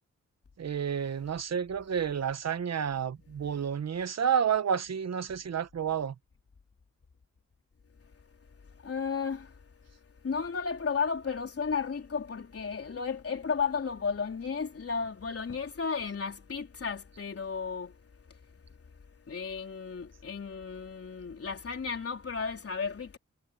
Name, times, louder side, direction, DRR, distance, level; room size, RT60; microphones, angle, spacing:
voice 1, 0.6-6.1, right 7 dB, 60° right, 1.0 m, -30 dB
voice 2, 7.9-23.2, left 5 dB, 50° left, 3.8 m, -34 dB
wide cardioid pair, 125°, 30 cm